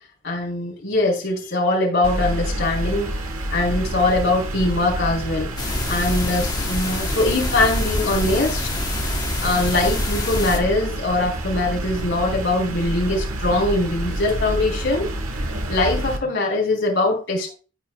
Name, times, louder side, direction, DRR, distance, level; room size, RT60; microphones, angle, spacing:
voice 1, 0.2-3.1 3.5-5.5 5.9-8.7 9.4-15.1 15.7-17.6, left 2 dB, 55° left, -2 dB, 3.6 m, -22 dB
sound 1, 2.0-16.2, right 1 dB, 80° right, 1.4 m, -28 dB
sound 2, 5.6-10.6, left 2 dB, 20° left, 1.0 m, -26 dB
14.0 x 4.7 x 2.3 m, 0.35 s
head